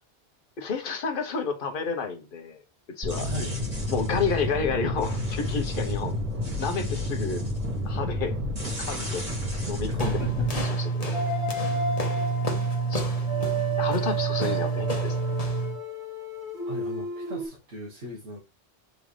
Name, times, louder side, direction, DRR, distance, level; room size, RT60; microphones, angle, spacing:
voice 1, 0.6-2.6 3.0-3.3 3.9-6.1 6.6-7.4 7.8-8.3 8.8-9.2 9.7-10.1 10.8-11.1 12.9-13.0 13.8-15.1, left 5 dB, 50° left, 1.2 m, -30 dB
sound 1, 3.0-10.6, left 1 dB, 30° right, 2.1 m, -30 dB
voice 2, 3.2-3.6 9.9-10.5 16.6-18.4, equal, 85° right, 1.7 m, -37 dB
sound 2, 10.0-15.8, right 3 dB, 35° left, 1.3 m, -28 dB
sound 3, 11.1-17.5, right 3 dB, 10° right, 2.5 m, -32 dB
7.9 x 3.8 x 3.3 m
omnidirectional pair, 1.1 m